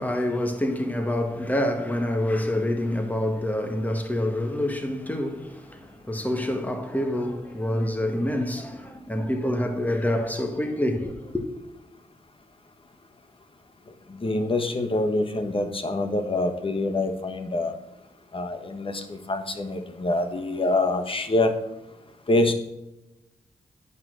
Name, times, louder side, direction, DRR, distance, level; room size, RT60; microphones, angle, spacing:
voice 1, 0.0-11.4, left 1 dB, 10° left, 1.7 m, -27 dB
voice 2, 14.2-17.7 18.3-21.5 22.3-22.5, left 2 dB, 40° left, 1.4 m, -25 dB
9.6 x 5.7 x 6.4 m
cardioid pair, 75°, 14 cm